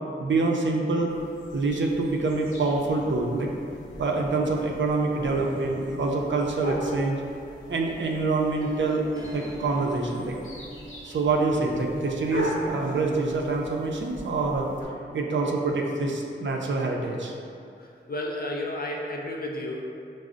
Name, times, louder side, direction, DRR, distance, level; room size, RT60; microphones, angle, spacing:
voice 1, 0.2-1.1 1.5-3.5 4.0-7.2 7.7-9.1 9.3-10.4 11.0-14.7 15.1-17.3, right 3 dB, 65° right, 0 dB, 0.4 m, -26 dB
sound 1, 1.1-14.8, equal, 75° left, 0.8 m, -39 dB
sound 2, 5.6-13.6, right 3 dB, 20° right, 0.6 m, -43 dB
voice 2, 17.8-19.8, left 1 dB, 50° left, 0 dB, 0.5 m, -32 dB
5.0 x 2.0 x 2.4 m, 2.4 s
cardioid pair, 50°, 21 cm